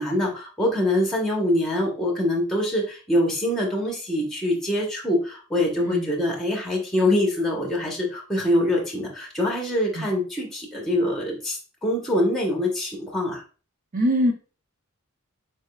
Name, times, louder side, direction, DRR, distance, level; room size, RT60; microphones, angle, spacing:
voice 1, 0.0-13.4, left 1 dB, ahead, -1 dB, 1.0 m, -24 dB
voice 2, 13.9-14.3, equal, 40° right, 3 dB, 0.6 m, -22 dB
4.1 x 3.5 x 2.3 m, 0.36 s
head